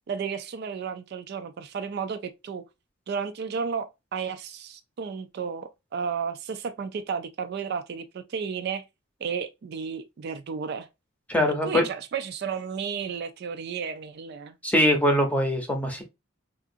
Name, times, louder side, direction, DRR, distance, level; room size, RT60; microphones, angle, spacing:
voice 1, 0.1-2.6 3.1-8.8 9.2-10.9 11.6-14.6, right 6 dB, 55° right, 0.3 m, -33 dB
voice 2, 11.3-11.9 14.6-16.0, left 1 dB, 10° left, 0.7 m, -22 dB
3.5 x 2.4 x 2.5 m
head